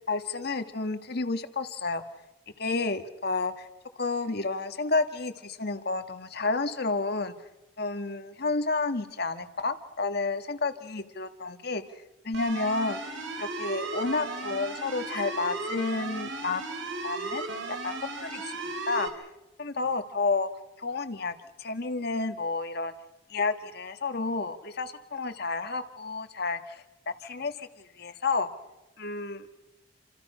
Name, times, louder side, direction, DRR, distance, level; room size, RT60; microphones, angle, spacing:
voice 1, 0.1-2.0 2.6-3.7 4.0-7.3 7.8-11.8 12.2-13.0 13.4-16.6 17.0-17.5 17.8-18.6 18.9-19.1 19.6-20.5 20.8-22.9 23.3-26.8 27.2-27.7 28.0-28.5 29.0-29.4, left 3 dB, 55° left, 8 dB, 1.6 m, -30 dB
sound 1, 12.3-19.1, right 3 dB, 75° right, 3.1 m, -35 dB
28.5 x 27.0 x 5.6 m, 1.0 s
head